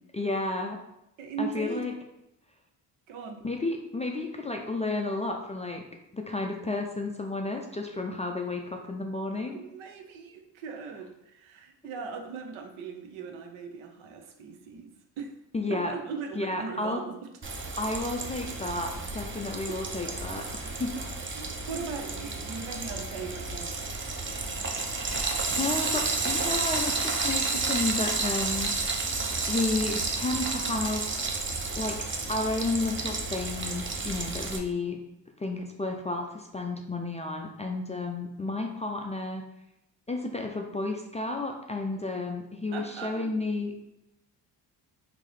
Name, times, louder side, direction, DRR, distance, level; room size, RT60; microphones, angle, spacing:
voice 1, 0.1-0.8 1.4-1.9 3.4-5.8 6.1-9.6 15.5-15.9 16.4-17.0 17.8-21.0 25.5-28.7 29.5-31.1 31.8-32.0 32.3-35.0 35.4-39.4 40.1-43.7, left 2 dB, 15° left, 2 dB, 0.3 m, -32 dB
voice 2, 1.2-1.9 3.1-3.4 9.5-14.9 15.2-15.3 15.7-17.2 19.7-19.8 21.4-24.1 42.7-43.3, right 5 dB, 70° right, 4 dB, 0.7 m, -39 dB
Frying (food), 17.4-34.6, right 3 dB, 25° right, 0.6 m, -31 dB
3.7 x 2.5 x 3.2 m, 0.86 s
hypercardioid pair, 45°, 49 cm